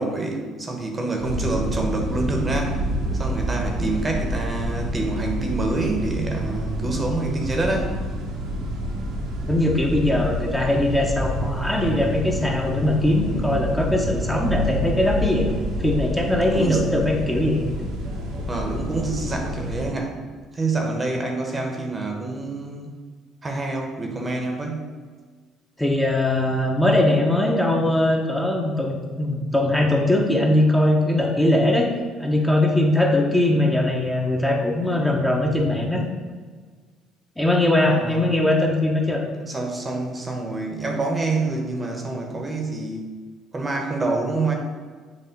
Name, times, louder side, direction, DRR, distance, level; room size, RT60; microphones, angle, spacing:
voice 1, 0.0-2.8 3.1-7.9 16.5-16.9 18.5-22.9 23.4-24.9 37.8-38.2 39.4-43.1 43.5-44.5, right 3 dB, 25° right, 2 dB, 1.1 m, -27 dB
sound 1, 1.2-19.9, equal, 80° right, 1.2 m, -28 dB
voice 2, 9.5-15.5 15.8-17.6 25.8-31.9 32.2-36.1 37.4-39.2, left 1 dB, 5° left, -1 dB, 1.0 m, -21 dB
7.1 x 2.8 x 5.3 m, 1.5 s
supercardioid pair, 80°, 0 cm